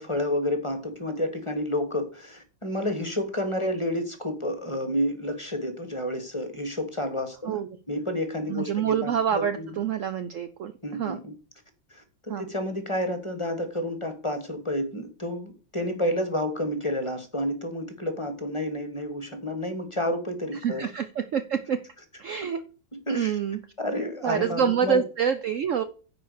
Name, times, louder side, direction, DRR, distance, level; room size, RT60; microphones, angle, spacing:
voice 1, 0.0-7.6 7.9-9.7 10.8-11.3 11.9-20.8 22.4-22.5 23.1-23.4 23.8-25.0, left 1 dB, 20° left, 7 dB, 1.1 m, -30 dB
voice 2, 7.4-7.8 8.5-11.2 12.3-12.4 20.6-21.8 22.2-22.6 23.1-23.6 24.2-25.8, right 8 dB, 80° right, 11 dB, 0.6 m, -27 dB
9.9 x 4.9 x 6.5 m, 0.38 s
omnidirectional pair, 2.1 m